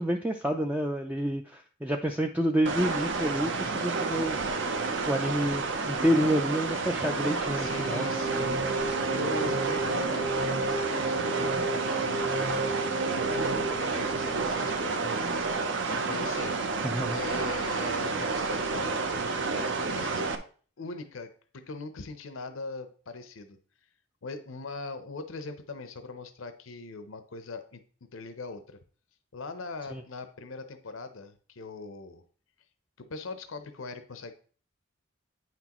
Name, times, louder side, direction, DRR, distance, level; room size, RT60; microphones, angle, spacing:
voice 1, 0.0-4.4 5.1-8.0 16.8-17.2 29.9-30.0, equal, 5° right, 3 dB, 0.3 m, -28 dB
sound 1, 2.7-20.4, right 4 dB, 65° right, 0.7 m, -30 dB
voice 2, 7.5-15.3 15.5-16.6 17.1-19.0 19.4-20.3 20.8-23.6 24.2-28.8 29.3-32.2 33.0-34.3, left 3 dB, 80° left, 9 dB, 0.7 m, -41 dB
sound 2, 7.6-14.8, right 2 dB, 50° right, 1.1 m, -33 dB
9.1 x 6.0 x 3.0 m, 0.42 s
head